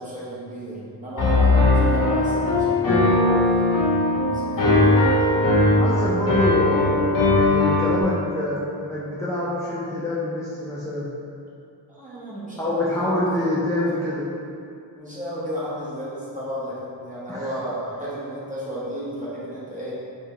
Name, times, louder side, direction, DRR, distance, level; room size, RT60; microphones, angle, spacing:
voice 1, 0.0-3.6 4.1-5.0 11.9-13.2 13.8-13.9 14.9-19.9, equal, 20° right, -9 dB, 1.2 m, -33 dB
Piano, 1.2-8.0, left 2 dB, 50° left, 0.8 m, -19 dB
voice 2, 5.8-7.0 7.4-11.1 12.6-14.2 17.3-17.5, left 1 dB, 5° left, -8 dB, 0.5 m, -26 dB
5.3 x 2.5 x 3.1 m, 2.5 s
wide cardioid pair, 100°, 42 cm